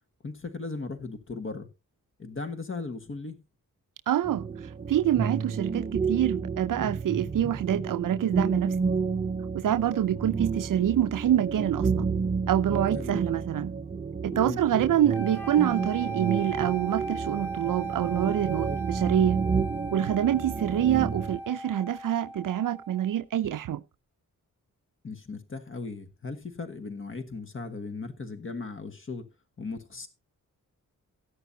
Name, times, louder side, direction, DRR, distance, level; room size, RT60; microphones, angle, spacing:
voice 1, 0.2-1.7 2.2-3.4 12.9-13.2 14.3-14.6 25.0-29.3 29.6-30.1, left 3 dB, 40° left, 1.5 m, -37 dB
voice 2, 4.1-4.5 4.9-8.7 9.5-12.1 12.5-13.7 14.2-19.4 19.9-23.8, right 11 dB, 80° right, 0.6 m, -26 dB
sound 1, 4.2-21.4, right 5 dB, 25° right, 0.6 m, -31 dB
sound 2, 15.1-23.2, right 3 dB, 5° left, 1.4 m, -38 dB
16.0 x 10.0 x 2.7 m
wide cardioid pair, 135°, 32 cm